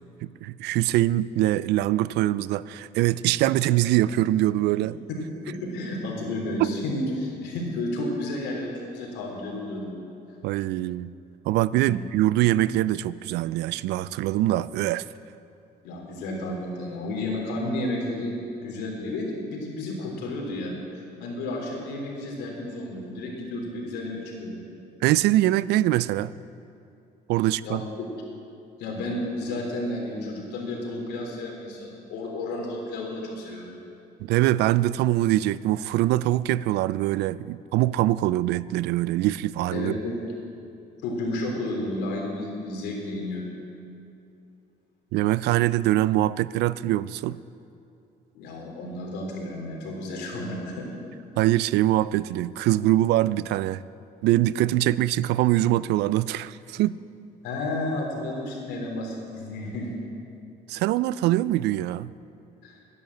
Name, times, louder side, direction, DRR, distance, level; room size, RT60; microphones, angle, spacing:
voice 1, 0.2-5.0 6.6-6.7 10.4-11.1 11.5-15.0 25.0-26.3 27.3-27.8 34.2-39.9 45.1-47.4 51.4-53.8 54.2-57.0 60.7-62.1, right 15 dB, 80° right, 0.4 m, -23 dB
voice 2, 5.5-9.9 11.8-12.0 15.8-18.4 18.6-24.6 27.6-28.1 28.8-33.8 39.7-40.2 41.0-43.5 48.3-50.9 57.4-59.9 62.6-62.8, left 1 dB, 85° left, 3.5 m, -32 dB
12.0 x 10.5 x 7.9 m
cardioid pair, 110°, 17 cm